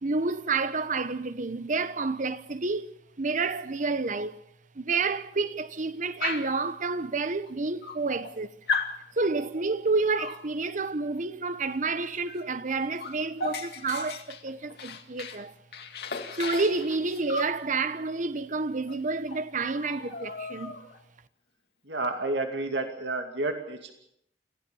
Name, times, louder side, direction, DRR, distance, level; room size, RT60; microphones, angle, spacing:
voice 1, 0.0-4.4 4.7-8.5 9.2-15.5 16.3-20.8, right 3 dB, 45° right, 1.0 m, -29 dB
Dog, 6.2-6.6 7.5-7.6 7.8-8.3 8.7-9.0 10.1-10.4 12.3-12.4 12.7-15.4 15.7-17.6 18.9-19.0 19.3-19.5 19.7-21.0, left 4 dB, 65° left, 2.2 m, -35 dB
voice 2, 21.8-23.9, right 2 dB, 85° right, 2.5 m, -30 dB
25.5 x 16.5 x 7.1 m
head